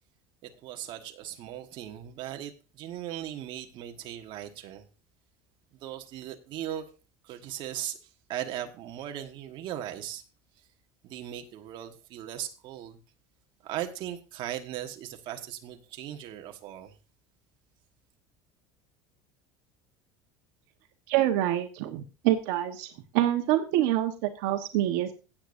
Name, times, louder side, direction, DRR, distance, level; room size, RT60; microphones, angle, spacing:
voice 1, 0.4-4.8 5.8-6.8 7.2-8.0 8.3-10.2 11.0-13.0 13.6-16.9, right 11 dB, 50° right, 1.4 m, -38 dB
voice 2, 21.1-22.9 23.1-25.1, right 13 dB, 75° right, 1.3 m, -26 dB
16.5 x 8.6 x 2.6 m
supercardioid pair, 135°, 10 cm